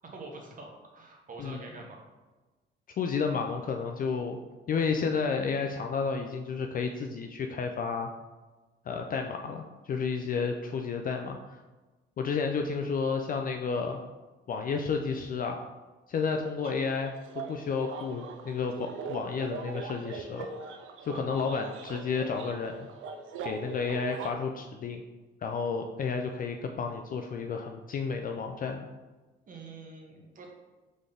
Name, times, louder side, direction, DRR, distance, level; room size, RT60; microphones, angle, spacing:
voice 1, 0.0-2.0 29.5-30.5, right 3 dB, 45° right, 1 dB, 1.1 m, -45 dB
voice 2, 3.0-4.4 4.7-8.1 8.9-11.6 12.2-14.0 14.5-15.6 16.1-20.5 21.0-22.7 23.4-25.0 25.4-28.9, left 5 dB, 45° left, 4 dB, 0.4 m, -31 dB
sound 1, 16.6-24.3, right 5 dB, 80° right, 0.5 m, -41 dB
3.9 x 3.7 x 3.4 m, 1.2 s
cardioid pair, 90°, 20 cm